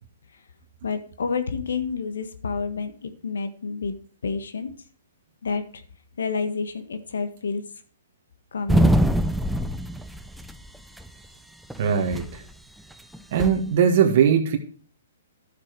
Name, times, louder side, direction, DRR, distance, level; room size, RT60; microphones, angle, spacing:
voice 1, 0.8-4.0 4.2-4.7 5.4-5.8 6.2-7.6 8.5-8.9, left 5 dB, 80° left, 10 dB, 1.6 m, -29 dB
sound 1, 8.7-10.7 11.0-11.1 11.7-12.3 13.1-13.6, equal, ahead, 0.5 m, -22 dB
voice 2, 11.8-12.4 13.3-14.6, right 7 dB, 50° right, 4 dB, 1.7 m, -20 dB
12.0 x 6.9 x 4.7 m, 0.42 s
hypercardioid pair, 145°, 0 cm